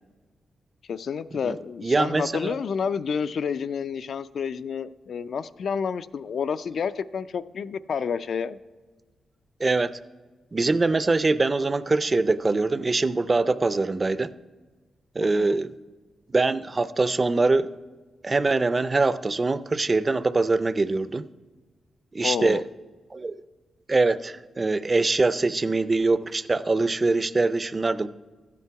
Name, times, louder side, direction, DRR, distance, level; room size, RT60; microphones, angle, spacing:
voice 1, 0.9-8.6 15.2-15.6 22.2-22.6, left 6 dB, 65° left, 14 dB, 0.3 m, -29 dB
voice 2, 1.8-2.6 9.6-10.0 10.5-14.3 15.2-15.7 16.3-17.7 18.2-21.3 22.1-22.6 23.1-23.3 23.9-28.1, right 3 dB, 30° right, 15 dB, 0.4 m, -23 dB
13.0 x 8.4 x 4.7 m, 1.3 s
cardioid pair, 110°, 0 cm